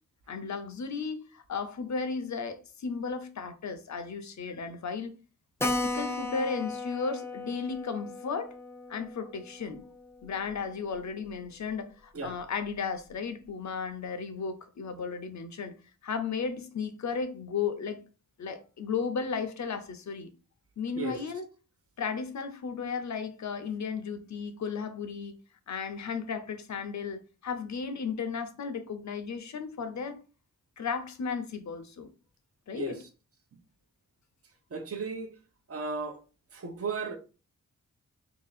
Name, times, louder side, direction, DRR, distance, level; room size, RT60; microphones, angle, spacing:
voice 1, 0.3-5.1 5.6-8.5 8.9-9.8 10.2-15.8 16.0-18.0 18.4-20.3 20.8-21.5 22.0-25.4 25.7-30.2 30.8-32.1 32.7-33.0, left 5 dB, 55° left, 0.7 m, -34 dB
Keyboard (musical), 5.6-10.7 10.9-11.0 11.3-11.4 11.7-11.8 12.3-12.7, left 2 dB, 10° left, 0.4 m, -36 dB
voice 2, 34.7-35.3 35.7-36.2 36.5-37.2, right 4 dB, 45° right, 0.8 m, -35 dB
2.9 x 2.8 x 4.0 m
cardioid pair, 85°, 33 cm